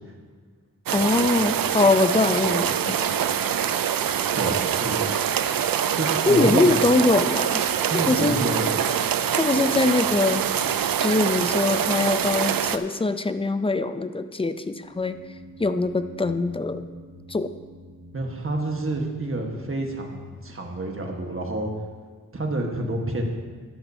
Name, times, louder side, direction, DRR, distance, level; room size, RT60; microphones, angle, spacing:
voice 1, 0.9-3.0 6.3-7.6 8.1-8.4 9.3-10.4 11.0-15.2 15.6-16.8 17.3-17.5, left 2 dB, 15° left, 10 dB, 0.5 m, -22 dB
sound 1, 0.9-12.8, right 9 dB, 85° right, 0.5 m, -24 dB
voice 2, 4.3-5.1 5.9-6.9 7.9-8.7 18.1-21.7 22.3-23.3, right 1 dB, 40° right, 2 dB, 1.5 m, -28 dB
sound 2, 14.8-21.0, equal, 60° right, 2.4 m, -47 dB
13.5 x 11.0 x 2.8 m, 1.5 s
wide cardioid pair, 95°, 34 cm